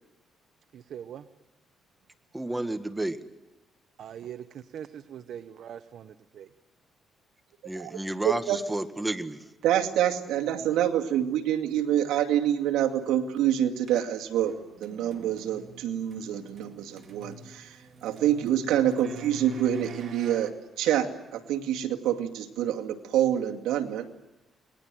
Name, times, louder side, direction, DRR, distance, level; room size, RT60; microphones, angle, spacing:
voice 1, 0.7-1.3 4.0-6.5 10.6-10.7, right 9 dB, 70° right, 11 dB, 1.0 m, -42 dB
voice 2, 2.3-3.2 7.6-9.4, right 1 dB, 10° right, 9 dB, 1.8 m, -31 dB
voice 3, 8.2-8.6 9.6-14.5 14.8-17.8 18.0-20.5 20.8-24.1, right 11 dB, 90° right, 2 dB, 2.3 m, -26 dB
sound 1, 13.8-20.5, right 2 dB, 50° right, 3.5 m, -47 dB
29.0 x 20.5 x 7.7 m, 1.0 s
cardioid pair, 90°, 0 cm